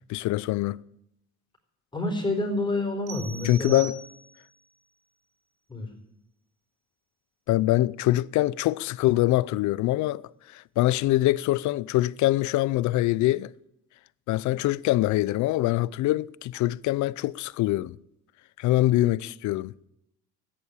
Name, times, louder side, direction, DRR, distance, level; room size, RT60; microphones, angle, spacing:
voice 1, 0.1-0.8 3.4-4.0 7.5-10.2 10.5-13.5 14.3-18.0 18.6-19.7, left 16 dB, 80° left, 0.5 m, -24 dB
voice 2, 1.9-3.9 5.7-5.9, left 2 dB, 15° left, 4.4 m, -28 dB
sound 1, 3.1-4.6, right 6 dB, 90° right, 1.5 m, -42 dB
14.0 x 10.5 x 8.3 m
cardioid pair, 115°, 29 cm